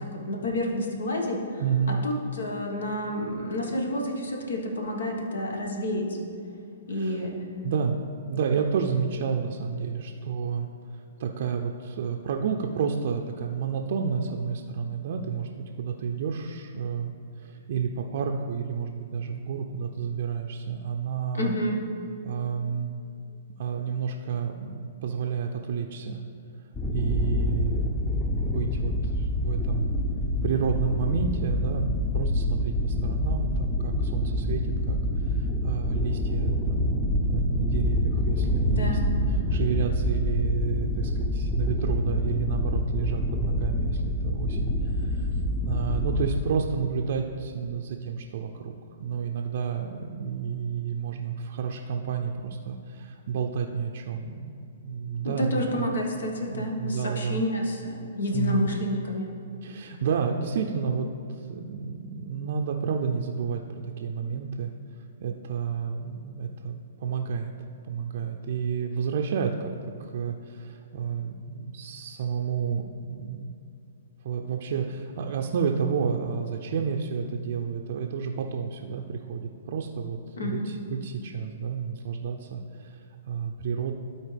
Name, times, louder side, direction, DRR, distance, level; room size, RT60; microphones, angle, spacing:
voice 1, 0.1-1.6 1.9-6.2 6.9-7.3 21.3-21.8 38.7-39.1 55.2-59.3 80.4-80.7, left 1 dB, 85° left, 1 dB, 1.4 m, -29 dB
voice 2, 1.6-2.0 6.9-7.3 7.6-8.0 8.2-21.5 22.2-23.0 23.6-26.2 26.9-29.9 30.4-31.9 32.1-39.0 39.3-48.7 49.0-54.5 54.8-55.9 56.5-57.4 58.3-58.7 59.6-67.5 67.8-69.7 70.0-73.5 74.2-83.9, right 6 dB, 60° right, 2 dB, 0.5 m, -30 dB
sound 1, 26.7-46.4, left 1 dB, 20° left, 0.8 m, -27 dB
12.5 x 4.2 x 3.4 m, 2.7 s
hypercardioid pair, 130°, 0 cm